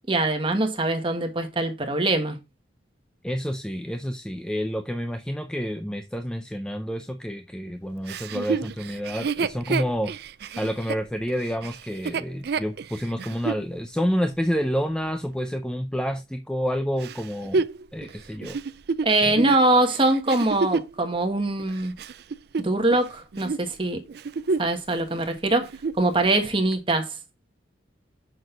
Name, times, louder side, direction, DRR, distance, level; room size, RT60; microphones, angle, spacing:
voice 1, 0.1-2.4 19.0-21.9 22.6-24.0 24.6-25.7 26.0-27.1, right 2 dB, 25° right, 1.5 m, -23 dB
voice 2, 3.2-10.1 10.6-17.7 17.9-18.6 19.2-19.5, equal, 5° left, 0.5 m, -29 dB
Chuckle chortle, 8.1-13.7 14.2-14.3 17.0-21.0 21.6-23.1 23.3-23.7 24.1-24.8 25.1-25.2 25.6-26.1 26.7-26.8, right 4 dB, 55° right, 0.4 m, -29 dB
6.5 x 6.4 x 3.8 m
head